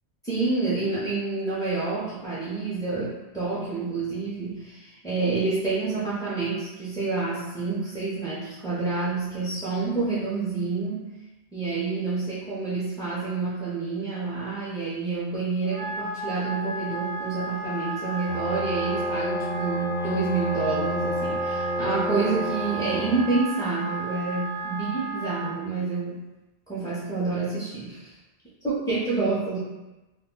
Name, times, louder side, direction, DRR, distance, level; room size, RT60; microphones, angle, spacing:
voice 1, 0.2-11.1 11.5-26.2 26.7-28.1 28.6-29.6, right 3 dB, 5° left, -10 dB, 0.4 m, -28 dB
Wind instrument woodwind instrument, 15.6-25.5, right 3 dB, 60° right, 0.6 m, -34 dB
sound 1, 18.3-23.3, equal, 85° right, 0.9 m, -29 dB
2.2 x 2.2 x 3.6 m, 1.1 s
omnidirectional pair, 1.1 m